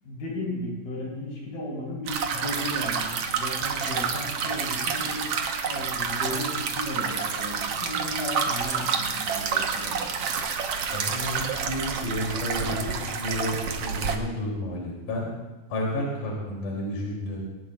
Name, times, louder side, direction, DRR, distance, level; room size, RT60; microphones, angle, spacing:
voice 1, 0.0-10.1, left 1 dB, 85° left, -3 dB, 5.2 m, -35 dB
sound 1, 2.1-14.2, right 6 dB, 60° right, 1.7 m, -29 dB
voice 2, 10.9-13.5 13.8-15.3 15.7-17.4, left 1 dB, 65° left, -3 dB, 4.3 m, -31 dB
21.0 x 18.5 x 2.4 m, 1.1 s
omnidirectional pair, 3.8 m